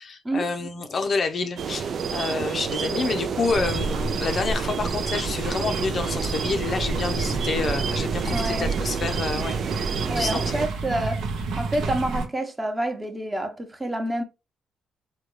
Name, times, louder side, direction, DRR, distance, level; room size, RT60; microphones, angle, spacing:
voice 1, 0.0-10.5, left 4 dB, 45° left, 0.5 m, -28 dB
sound 1, 1.6-10.7, right 6 dB, 55° right, 0.3 m, -29 dB
sound 2, 3.5-12.3, right 3 dB, 80° right, 0.8 m, -30 dB
voice 2, 8.3-8.7 10.1-11.2 11.6-14.2, right 1 dB, 15° right, 0.9 m, -28 dB
3.8 x 2.2 x 3.1 m
cardioid pair, 90°, 0 cm